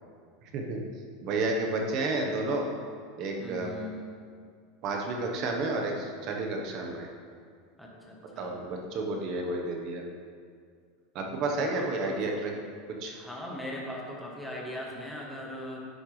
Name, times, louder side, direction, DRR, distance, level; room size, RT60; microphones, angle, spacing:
voice 1, 1.2-2.7 3.2-3.7 4.8-7.1 8.4-10.0 11.1-12.5 13.0-13.1, right 2 dB, 40° right, 1 dB, 1.2 m, -31 dB
voice 2, 3.4-4.1 7.8-8.6 11.4-12.2 13.1-15.8, left 1 dB, ahead, -3 dB, 1.2 m, -40 dB
10.5 x 7.8 x 3.3 m, 2.1 s
supercardioid pair, 165°, 0 cm